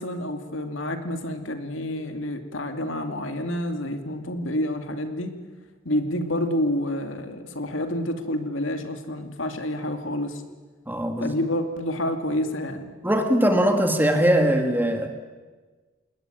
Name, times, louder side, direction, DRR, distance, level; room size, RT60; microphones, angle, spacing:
voice 1, 0.0-5.4 5.8-10.4 11.2-12.9, left 1 dB, 70° left, 6 dB, 2.6 m, -28 dB
voice 2, 10.9-11.4 13.0-15.1, equal, 10° right, 5 dB, 2.4 m, -21 dB
27.5 x 20.5 x 9.2 m, 1.4 s
head